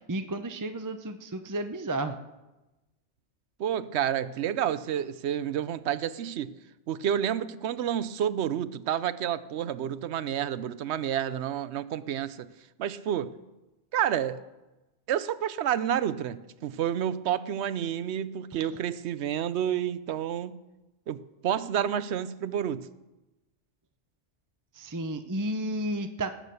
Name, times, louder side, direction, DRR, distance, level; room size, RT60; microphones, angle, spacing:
voice 1, 0.0-2.2 18.5-18.6 24.7-26.3, right 1 dB, 20° right, 8 dB, 0.6 m, -32 dB
voice 2, 3.6-6.5 6.9-12.5 12.8-13.3 13.9-14.4 15.1-20.6 21.1-22.9, right 9 dB, 70° right, 15 dB, 0.9 m, -29 dB
19.0 x 7.6 x 6.8 m, 1.0 s
omnidirectional pair, 1.2 m